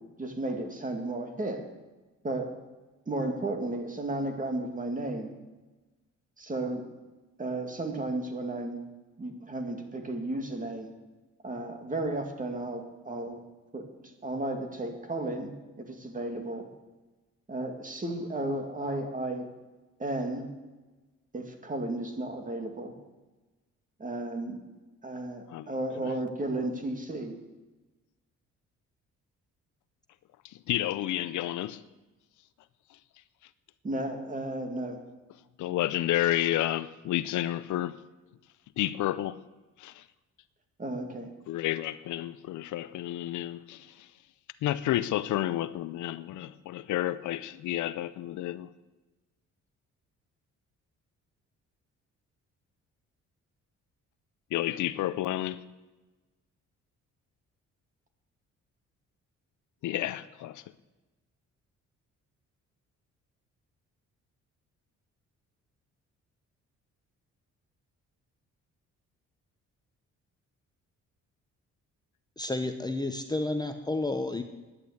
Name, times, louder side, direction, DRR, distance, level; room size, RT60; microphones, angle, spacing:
voice 1, 0.2-1.6 2.2-2.5 3.1-5.4 6.4-6.9 7.4-8.8 9.2-10.9 11.4-13.4 13.7-15.5 15.8-16.7 17.5-19.5 20.0-20.5 21.3-22.9 24.0-24.6 25.0-27.4 33.8-35.0 40.8-41.3, right 2 dB, 25° right, 2.3 m, -33 dB
voice 2, 30.4-31.8 35.6-38.0 38.8-39.4 39.8-40.0 41.5-44.1 44.6-48.7 54.5-55.6 59.8-60.6, left 14 dB, 80° left, 0.6 m, -30 dB
voice 3, 72.4-74.4, left 2 dB, 15° left, 0.9 m, -31 dB
10.5 x 9.7 x 8.4 m
cardioid pair, 90°, 30 cm